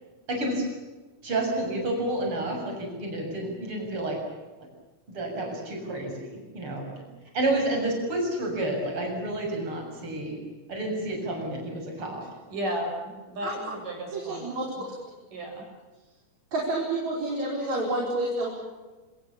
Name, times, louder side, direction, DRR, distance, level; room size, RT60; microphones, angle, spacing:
voice 1, 0.3-0.6 1.2-4.2 5.1-7.0 7.3-10.4 10.7-12.3, right 1 dB, 40° right, 2 dB, 7.8 m, -30 dB
voice 2, 12.5-12.9 13.3-14.5 14.8-14.9 15.3-15.6, equal, 80° right, 2 dB, 8.8 m, -33 dB
voice 3, 14.1-14.9 16.5-18.5, right 2 dB, 60° right, -2 dB, 6.4 m, -29 dB
27.0 x 26.0 x 7.1 m, 1.2 s
omnidirectional pair, 3.7 m